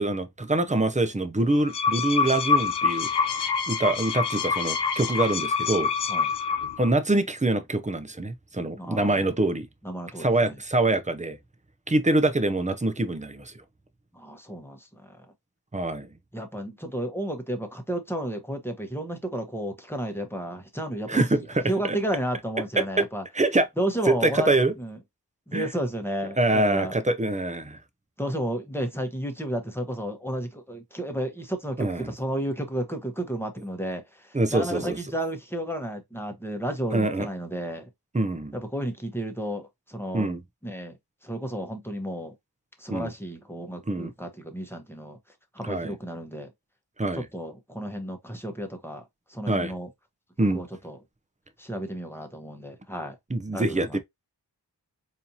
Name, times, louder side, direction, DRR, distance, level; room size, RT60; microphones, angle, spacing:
voice 1, 0.0-3.3 3.7-5.9 6.8-9.7 10.2-11.4 11.9-13.5 15.7-16.1 21.1-22.0 22.8-23.1 23.3-23.7 24.1-24.7 25.5-25.7 26.4-27.8 31.8-32.1 34.3-35.0 36.9-37.3 38.1-38.5 40.1-40.4 42.9-43.1 43.9-44.1 45.6-45.9 47.0-47.2 49.5-49.7 50.4-50.6 53.3-54.0, right 2 dB, 20° right, 0.6 m, -25 dB
sound 1, 1.5-6.9, left 5 dB, 75° left, 0.6 m, -26 dB
voice 2, 8.8-9.5 9.8-10.6 14.1-15.3 16.3-23.2 23.8-25.0 25.5-27.0 28.2-37.9 38.5-40.3 40.6-42.3 42.8-45.2 45.5-46.5 47.1-49.0 49.3-49.9 50.5-51.0 51.6-53.2 53.5-54.0, right 1 dB, 5° left, 1.0 m, -32 dB
4.2 x 2.7 x 2.7 m
wide cardioid pair, 45°, 41 cm